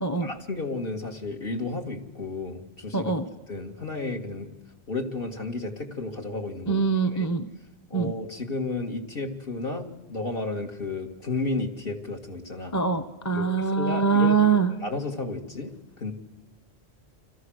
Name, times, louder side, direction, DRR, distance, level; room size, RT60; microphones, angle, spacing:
voice 1, 0.1-3.1 3.5-4.5 4.9-7.3 7.9-12.8 13.3-15.7 16.0-16.1, left 3 dB, 60° left, 2 dB, 2.2 m, -33 dB
voice 2, 2.9-3.2 6.7-7.4 7.9-8.1 12.7-14.7, right 5 dB, 15° left, 7 dB, 0.9 m, -23 dB
29.5 x 26.0 x 6.4 m, 1.1 s
omnidirectional pair, 1.1 m